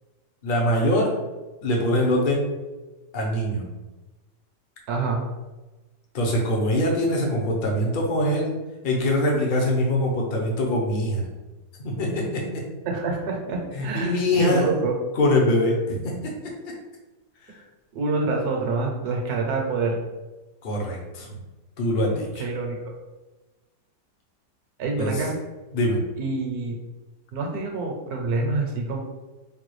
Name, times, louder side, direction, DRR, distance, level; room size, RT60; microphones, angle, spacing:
voice 1, 0.4-1.1 1.6-2.5 3.1-3.6 6.1-8.5 8.8-11.3 11.8-12.6 13.7-14.6 15.1-16.1 17.5-17.6 20.6-21.4 21.8-22.5 25.0-25.2 25.7-26.0, left 1 dB, 50° left, -1 dB, 0.6 m, -23 dB
voice 2, 4.9-5.3 12.8-14.9 17.9-20.0 22.1-22.8 24.8-25.4 26.2-26.8 27.3-29.0, right 3 dB, 65° right, 0 dB, 1.1 m, -26 dB
5.3 x 2.3 x 3.1 m, 1.1 s
omnidirectional pair, 1.9 m